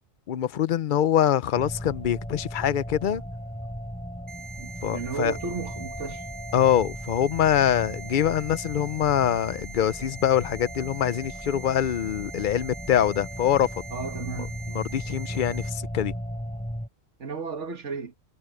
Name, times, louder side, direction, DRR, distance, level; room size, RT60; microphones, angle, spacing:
voice 1, 0.3-3.2 4.8-5.3 6.5-13.8 14.7-16.1, left 10 dB, 50° left, 0.7 m, -24 dB
sound 1, 1.5-16.9, equal, 5° left, 5.7 m, -37 dB
sound 2, 4.3-15.7, right 5 dB, 20° right, 0.8 m, -43 dB
voice 2, 4.6-6.3 13.9-14.7 17.2-18.2, right 5 dB, 80° right, 1.9 m, -34 dB
omnidirectional pair, 1.2 m